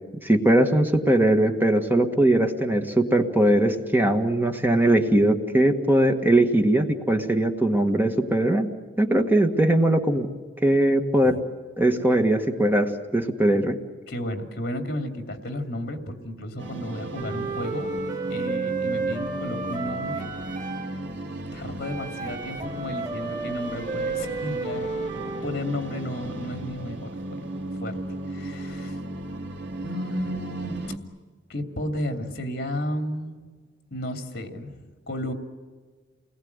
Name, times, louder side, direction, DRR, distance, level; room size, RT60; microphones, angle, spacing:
voice 1, 0.1-8.7 9.0-10.3 10.6-11.4 11.8-13.7, right 1 dB, 10° right, 5 dB, 1.7 m, -20 dB
voice 2, 14.1-17.9 18.3-20.3 21.5-24.9 25.4-27.5 27.8-28.0 28.3-29.0 29.8-31.0 31.5-33.5 33.9-34.8 35.1-35.3, left 1 dB, 60° left, 6 dB, 2.8 m, -33 dB
sound 1, 16.6-31.0, right 1 dB, 80° right, 2.5 m, -36 dB
Wind instrument woodwind instrument, 17.1-20.9 21.8-25.4, right 3 dB, 45° right, 6.1 m, -32 dB
29.0 x 21.0 x 9.6 m, 1.5 s
head